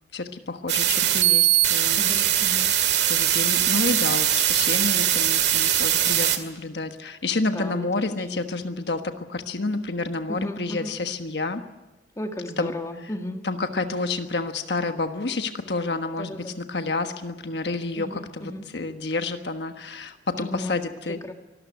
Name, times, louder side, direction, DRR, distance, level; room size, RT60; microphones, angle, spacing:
voice 1, 0.1-2.0 3.1-11.6 12.6-12.7 13.4-21.2, left 3 dB, 70° left, 7 dB, 1.3 m, -29 dB
sound 1, 0.7-6.4, right 11 dB, 70° right, 2.0 m, -21 dB
voice 2, 2.0-2.7 7.4-8.4 10.3-11.0 12.2-13.4 16.2-16.6 18.0-18.7 20.4-20.8 21.1-21.3, left 1 dB, 20° left, 5 dB, 1.8 m, -35 dB
25.0 x 13.5 x 9.5 m, 1.1 s
head